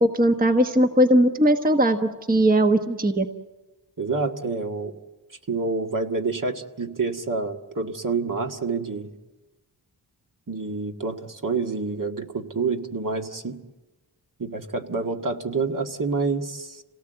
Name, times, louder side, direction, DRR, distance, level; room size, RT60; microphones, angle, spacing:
voice 1, 0.0-3.3, right 1 dB, 20° right, 5 dB, 1.2 m, -19 dB
voice 2, 4.0-4.9 5.5-9.1 10.5-13.6 14.4-16.8, right 4 dB, 45° right, 3 dB, 1.8 m, -28 dB
27.5 x 18.0 x 7.9 m, 1.1 s
wide cardioid pair, 70°, 45 cm